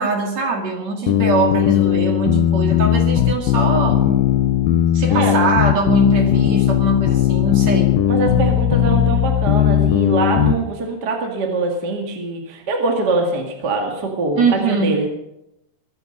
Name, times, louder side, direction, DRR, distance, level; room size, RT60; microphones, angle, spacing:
voice 1, 0.0-4.0 4.9-8.0 14.3-15.0, right 4 dB, 55° right, 2 dB, 3.1 m, -22 dB
sound 1, 1.1-10.6, left 11 dB, 85° left, 2.8 m, -17 dB
voice 2, 8.1-15.1, right 3 dB, 35° right, 2 dB, 2.2 m, -23 dB
22.0 x 9.8 x 5.5 m, 0.84 s
omnidirectional pair, 4.1 m